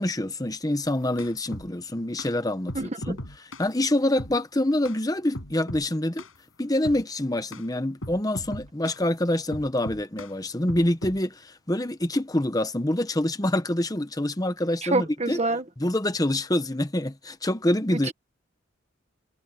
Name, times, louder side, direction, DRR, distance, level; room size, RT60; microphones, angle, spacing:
voice 1, 0.0-2.7 3.1-3.2 3.6-6.2 6.6-15.4 15.8-18.1, left 1 dB, 20° left, 1.0 m, -26 dB
sound 1, 0.9-1.7 2.2-2.3 2.7-3.7 4.2-4.4 4.8-5.0 5.3-5.9 6.2-6.4 6.8-7.0 7.5-7.7 8.0-9.0 9.5-10.3 10.7-11.2, left 1 dB, 85° left, 7.4 m, -38 dB
voice 2, 2.7-3.1 14.8-15.6 18.1-18.2, right 2 dB, 35° right, 1.6 m, -26 dB
head